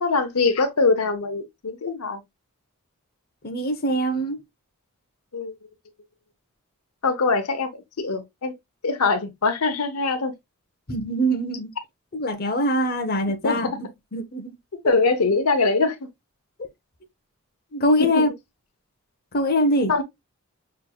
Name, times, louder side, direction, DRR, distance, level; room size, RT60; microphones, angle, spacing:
voice 1, 0.0-2.2 5.3-5.5 7.0-8.5 8.8-10.3 13.4-13.8 14.9-16.0 18.0-18.2 19.9-20.0, left 3 dB, 90° left, 0.8 m, -23 dB
voice 2, 3.4-4.4 10.9-11.7 12.1-14.5 17.7-18.3 19.3-19.9, equal, 45° left, 0.9 m, -23 dB
5.7 x 3.3 x 2.3 m
head